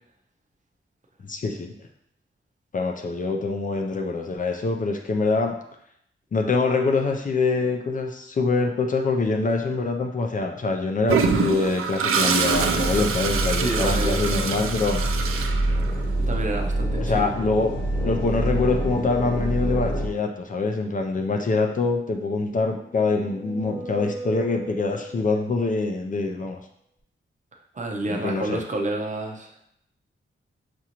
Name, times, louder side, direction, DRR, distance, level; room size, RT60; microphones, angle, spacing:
voice 1, 1.2-1.7 2.7-5.6 6.3-15.0 17.0-17.7 18.0-26.6 28.1-28.6, left 3 dB, 40° left, 3 dB, 0.4 m, -24 dB
Toilet flush, 11.1-16.1, right 6 dB, 90° right, 0.4 m, -25 dB
sound 1, 12.5-20.1, right 1 dB, 25° left, 1.1 m, -26 dB
voice 2, 13.6-14.2 16.2-17.3 27.7-29.5, right 2 dB, 35° right, 2 dB, 0.5 m, -29 dB
sound 2, 22.5-25.6, right 2 dB, ahead, 0.9 m, -38 dB
6.0 x 2.5 x 2.9 m, 0.73 s
wide cardioid pair, 155°, 21 cm